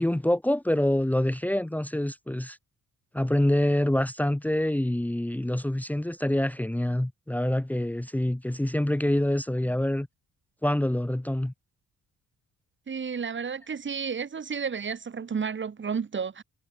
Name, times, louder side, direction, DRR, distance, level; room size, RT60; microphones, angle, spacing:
voice 1, 0.0-2.6 3.1-10.1 10.6-11.5, left 1 dB, 5° left, 1.7 m, -26 dB
voice 2, 12.9-16.4, right 6 dB, 40° right, 3.0 m, -32 dB
cardioid pair, 90°, 30 cm